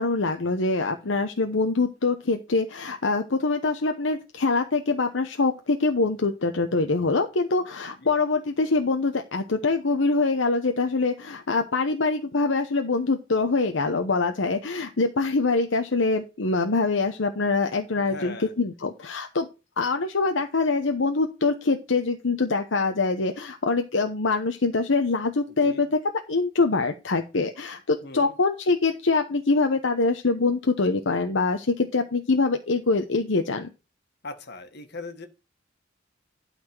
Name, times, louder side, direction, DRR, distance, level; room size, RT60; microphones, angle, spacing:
voice 1, 0.0-19.5 19.8-25.9 26.3-33.7, left 3 dB, 75° left, 0.9 m, -24 dB
voice 2, 18.0-18.5 25.5-25.8 28.0-28.3 34.2-35.3, left 2 dB, 60° left, 1.7 m, -40 dB
12.0 x 4.3 x 6.0 m
head